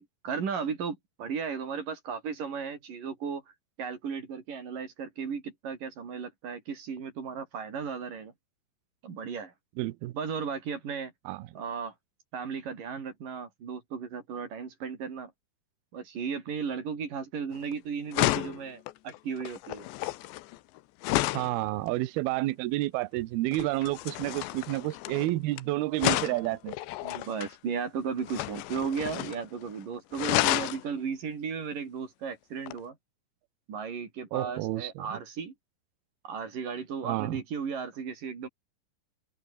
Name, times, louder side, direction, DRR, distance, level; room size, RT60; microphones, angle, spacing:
voice 1, 0.0-3.4 3.8-8.3 9.0-9.5 10.1-11.1 11.5-11.9 12.3-15.3 15.9-19.9 21.4-21.5 24.3-24.4 27.0-33.0 33.7-35.5 36.2-38.5, right 6 dB, 50° right, 5.0 m, -35 dB
voice 2, 9.8-10.1 11.3-11.5 21.3-26.8 34.3-35.2 37.0-37.4, right 18 dB, 75° right, 2.6 m, -30 dB
sound 1, 17.5-17.7 18.1-21.6 23.5-25.6 26.0-27.5 28.2-29.4 29.7-29.8 30.1-30.8 32.7-32.8, left 17 dB, 80° left, 3.1 m, -31 dB
open air
omnidirectional pair, 5.1 m